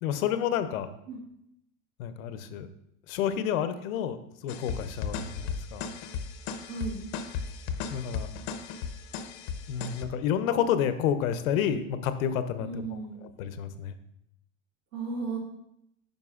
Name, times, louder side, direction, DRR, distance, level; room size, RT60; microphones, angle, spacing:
voice 1, 0.0-0.9 2.0-2.7 3.1-4.2 4.4-5.8 7.9-8.3 9.7-13.9, left 9 dB, 85° left, 11 dB, 0.7 m, -30 dB
sound 1, 4.5-10.1, left 6 dB, 55° left, 0.6 m, -36 dB
voice 2, 6.6-7.0 12.6-13.2 14.9-15.4, right 4 dB, 65° right, 0 dB, 1.9 m, -35 dB
9.3 x 5.3 x 2.4 m, 0.79 s
supercardioid pair, 160°, 40 cm